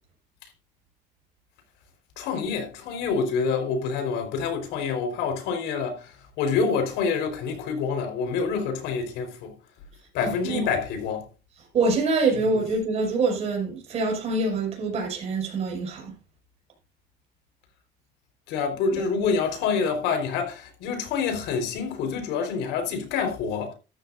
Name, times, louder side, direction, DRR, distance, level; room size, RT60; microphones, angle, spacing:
voice 1, 2.2-9.5 10.1-11.3 18.5-23.7, left 5 dB, 85° left, 4.2 m, -27 dB
voice 2, 10.2-10.7 11.7-16.1, right 3 dB, 40° right, 5.7 m, -25 dB
13.5 x 12.0 x 2.6 m
cardioid pair, 175°, 17 cm